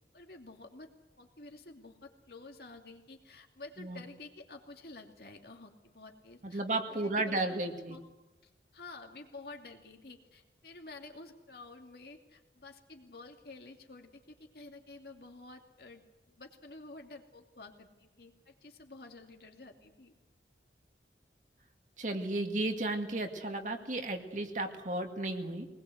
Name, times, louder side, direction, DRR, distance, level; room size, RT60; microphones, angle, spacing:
voice 1, 0.1-0.9 1.2-6.6 6.9-8.0 8.4-16.0 16.4-20.1, left 3 dB, 60° left, 3 dB, 2.7 m, -50 dB
voice 2, 6.4-8.0 22.0-25.7, right 2 dB, 45° right, 4 dB, 2.2 m, -34 dB
22.5 x 20.0 x 8.0 m, 1.1 s
head